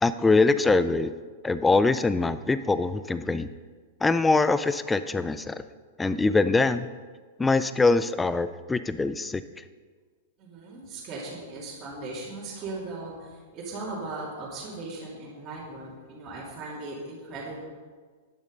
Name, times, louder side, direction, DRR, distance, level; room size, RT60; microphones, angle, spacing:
voice 1, 0.0-1.1 1.4-3.5 4.0-5.6 6.0-6.9 7.4-9.6, left 3 dB, 5° left, 13 dB, 0.3 m, -23 dB
voice 2, 10.4-17.6, right 2 dB, 20° right, -7 dB, 2.7 m, -38 dB
10.5 x 10.5 x 5.2 m, 1.5 s
supercardioid pair, 175°, 0 cm